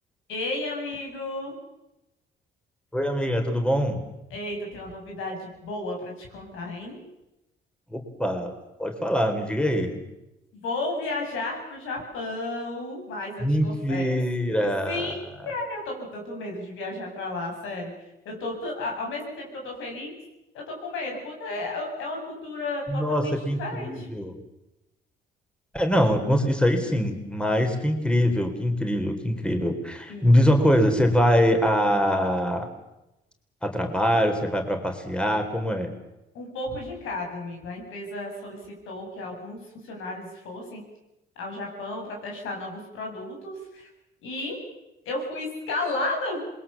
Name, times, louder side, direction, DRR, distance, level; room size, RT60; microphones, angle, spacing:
voice 1, 0.3-1.5 4.3-7.0 10.5-14.2 14.6-17.9 18.2-20.1 20.5-23.3 23.6-24.1 30.1-30.4 36.3-39.6 39.8-40.8 41.4-43.9 44.2-44.6 45.0-46.4, left 2 dB, 90° left, 0 dB, 8.0 m, -33 dB
voice 2, 2.9-4.0 7.9-8.5 8.8-10.0 13.4-15.2 22.9-24.3 25.7-32.7 33.6-35.9, equal, 5° left, 5 dB, 3.8 m, -23 dB
27.0 x 21.5 x 7.2 m, 0.94 s
cardioid pair, 90°, 20 cm